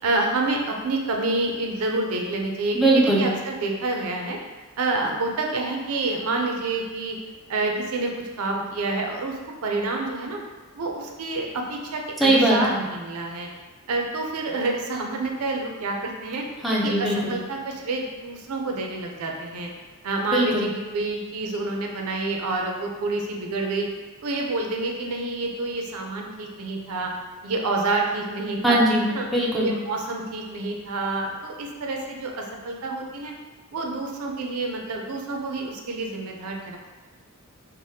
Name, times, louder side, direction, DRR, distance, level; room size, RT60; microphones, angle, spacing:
voice 1, 0.0-4.4 4.8-7.2 7.5-8.1 8.4-10.4 10.8-13.5 13.9-16.4 16.8-19.7 20.0-23.9 24.2-27.1 27.4-28.8 29.1-29.3 29.6-33.3 33.7-36.8, right 2 dB, 85° right, 1 dB, 0.4 m, -28 dB
voice 2, 2.7-3.2 12.2-12.8 16.6-17.4 20.3-20.7 28.6-29.7, right 1 dB, ahead, -6 dB, 0.4 m, -20 dB
3.3 x 2.1 x 2.7 m, 1.3 s
head